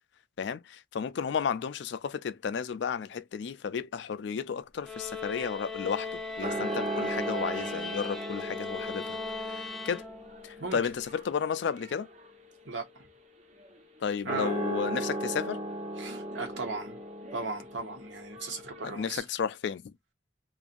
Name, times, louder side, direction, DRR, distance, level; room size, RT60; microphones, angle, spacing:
voice 1, 0.4-9.2 9.5-10.0 10.4-12.1 14.0-15.6 18.8-19.8, left 6 dB, 65° left, 0.4 m, -33 dB
sound 1, 4.8-10.5, left 3 dB, ahead, 0.5 m, -38 dB
sound 2, 5.4-19.2, right 1 dB, 35° right, 0.9 m, -38 dB
voice 2, 12.6-13.1 14.2-14.6 16.0-17.0 17.3-19.2, right 3 dB, 80° right, 1.0 m, -37 dB
2.6 x 2.4 x 2.5 m
head